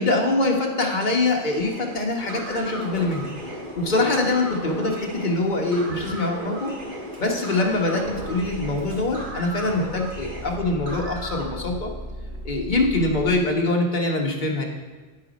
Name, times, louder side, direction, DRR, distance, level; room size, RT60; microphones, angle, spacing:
voice 1, 0.0-3.3 3.8-6.7 7.2-11.9 12.4-14.7, left 2 dB, 40° left, 0 dB, 1.3 m, -24 dB
sound 1, 1.5-11.5, right 1 dB, 40° right, 1.7 m, -36 dB
Car / Engine starting / Idling, 2.8-3.5 3.8-4.5 5.2-5.3 5.5-5.6 5.9-6.2 7.1-13.3, equal, 85° right, 2.7 m, -38 dB
9.7 x 5.6 x 5.1 m, 1.3 s
omnidirectional pair, 1.3 m